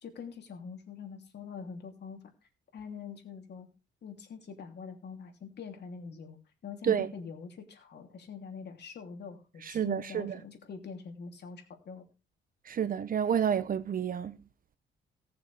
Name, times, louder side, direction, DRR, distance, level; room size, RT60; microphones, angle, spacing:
voice 1, 0.0-2.2 2.7-3.7 4.0-6.4 6.6-12.1, left 6 dB, 60° left, 2.9 m, -44 dB
voice 2, 9.6-10.4 12.7-14.4, right 8 dB, 45° right, 0.7 m, -29 dB
18.5 x 6.8 x 3.3 m
cardioid pair, 90°, 20 cm